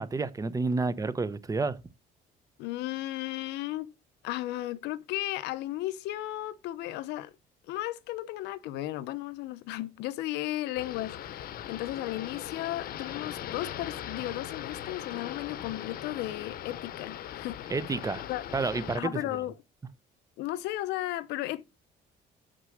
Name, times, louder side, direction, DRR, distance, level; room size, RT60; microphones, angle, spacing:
voice 1, 0.0-1.8 17.7-18.2 18.5-19.2, right 3 dB, 20° right, 0.8 m, -30 dB
voice 2, 2.6-3.9 4.2-7.3 7.7-17.6 18.3-18.4 18.9-19.5 20.4-21.6, left 15 dB, 90° left, 0.8 m, -35 dB
sound 1, 10.8-19.0, left 11 dB, 60° left, 0.9 m, -40 dB
6.3 x 6.3 x 6.4 m
cardioid pair, 110°, 17 cm